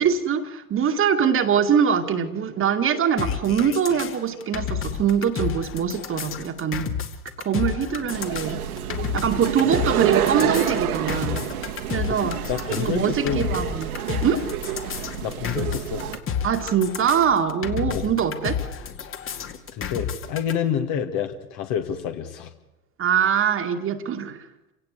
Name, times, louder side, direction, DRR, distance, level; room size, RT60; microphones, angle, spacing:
voice 1, 0.0-6.9 7.4-8.6 9.1-11.5 11.9-12.4 12.8-14.0 14.2-14.4 16.4-18.6 23.0-24.5, right 7 dB, 25° right, 5 dB, 2.1 m, -23 dB
sound 1, 3.2-20.5, left 7 dB, 25° left, 2.2 m, -31 dB
sound 2, 8.1-16.2, right 10 dB, 65° right, 2.2 m, -28 dB
voice 2, 12.1-13.4 15.2-16.1 17.9-18.1 19.7-22.5, left 8 dB, 45° left, 6 dB, 2.1 m, -28 dB
28.5 x 17.5 x 8.3 m, 1.0 s
figure-of-eight pair, 90°, 46 cm